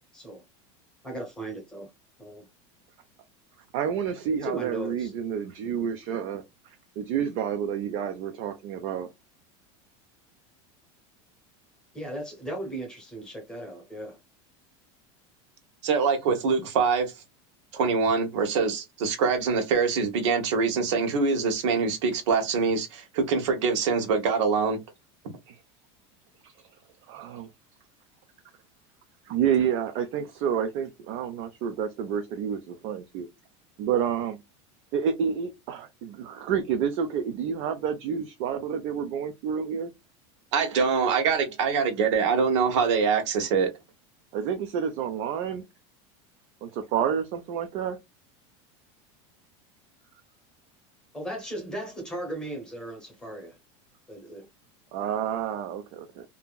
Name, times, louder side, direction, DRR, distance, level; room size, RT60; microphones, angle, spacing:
voice 1, 1.0-1.9 2.2-2.5 4.4-5.1 11.9-14.2 51.1-53.6 54.1-54.5, right 1 dB, 5° left, 0.9 m, -37 dB
voice 2, 3.7-6.4 7.0-9.1 25.5-25.6 27.1-27.5 29.3-33.3 33.8-34.4 34.9-39.9 44.3-45.6 46.6-48.0 54.9-56.2, right 8 dB, 40° right, 0.4 m, -29 dB
voice 3, 15.8-17.1 17.7-24.8 40.5-43.7, right 5 dB, 80° right, 1.0 m, -24 dB
2.8 x 2.6 x 2.2 m
supercardioid pair, 170°, 15 cm